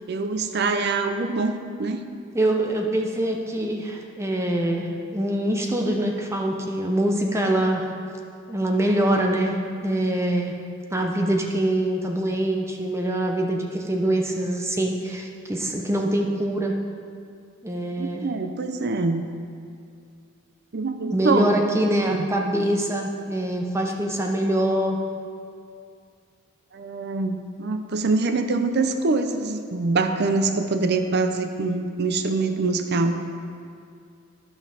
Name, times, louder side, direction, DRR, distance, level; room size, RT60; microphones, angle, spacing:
voice 1, 0.1-2.0 18.0-19.2 20.7-21.6 21.9-22.3 26.7-33.2, right 3 dB, 55° right, 8 dB, 0.6 m, -24 dB
voice 2, 2.3-7.9 8.5-9.6 9.8-10.5 10.9-16.7 17.6-18.3 21.1-25.0, right 1 dB, 15° right, 1 dB, 0.6 m, -24 dB
12.0 x 5.5 x 4.9 m, 2.4 s
head